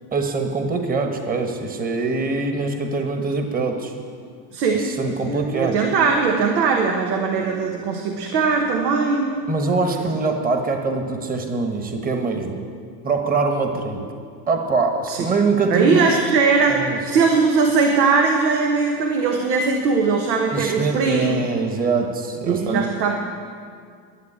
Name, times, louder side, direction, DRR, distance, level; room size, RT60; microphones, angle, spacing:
voice 1, 0.1-3.9 4.8-5.8 9.5-12.6 13.0-14.0 14.5-16.2 16.7-17.0 20.5-22.9, right 3 dB, 20° right, 5 dB, 1.3 m, -23 dB
voice 2, 4.5-9.4 9.9-10.2 15.1-15.3 15.7-21.4 22.5-23.1, right 4 dB, 90° right, 2 dB, 1.3 m, -20 dB
12.0 x 7.8 x 8.8 m, 2.1 s
supercardioid pair, 110°, 48 cm